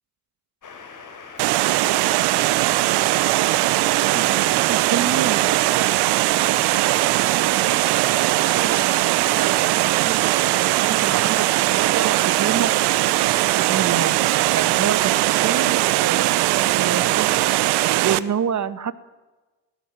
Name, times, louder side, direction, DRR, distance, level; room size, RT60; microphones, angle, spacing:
sound 1, 0.6-18.2, left 5 dB, 45° left, 6.1 m, -41 dB
Water, 1.4-18.2, right 18 dB, 70° right, 1.0 m, -20 dB
voice 1, 3.5-5.8 6.6-17.3 18.0-18.9, right 8 dB, 45° right, 14 dB, 1.7 m, -30 dB
21.0 x 17.0 x 9.2 m, 1.2 s
hypercardioid pair, 55°, 41 cm